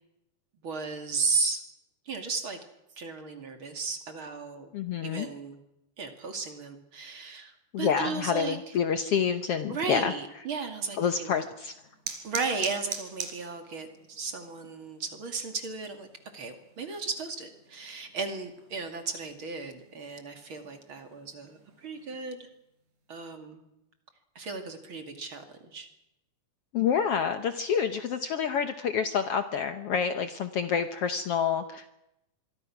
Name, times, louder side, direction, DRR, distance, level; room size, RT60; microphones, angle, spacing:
voice 1, 0.6-1.6 2.1-2.6 3.0-4.7 5.0-5.6 6.0-8.6 9.7-11.4 12.2-16.1 16.3-22.5 23.1-23.6 24.3-25.9, right 4 dB, 45° right, 6 dB, 2.9 m, -35 dB
voice 2, 4.7-5.3 7.7-10.1 11.0-11.7 26.7-31.9, left 7 dB, 65° left, 9 dB, 1.6 m, -28 dB
sound 1, 11.0-22.2, right 7 dB, 90° right, 4.8 m, -45 dB
25.5 x 23.0 x 6.0 m, 0.86 s
omnidirectional pair, 3.6 m